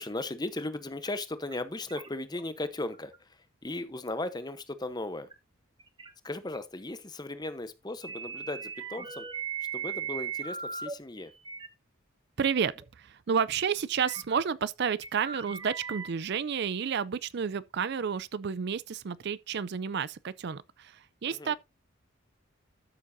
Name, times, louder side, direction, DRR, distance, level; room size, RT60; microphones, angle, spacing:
voice 1, 0.0-5.3 6.2-9.3 9.7-11.3 21.3-21.6, left 2 dB, 20° left, 0.9 m, -37 dB
sound 1, 1.1-1.2 1.5-1.6 1.9-2.4 2.9-3.2 3.6-3.7 5.3-5.4 5.8-6.1 6.5-6.6 8.0-10.9 11.4-11.7 12.5-12.6 12.8-12.9 14.0-14.4 14.9-16.1, right 7 dB, 25° right, 1.0 m, -38 dB
voice 2, 12.4-21.5, right 6 dB, 50° right, 0.4 m, -31 dB
13.0 x 7.3 x 2.6 m
head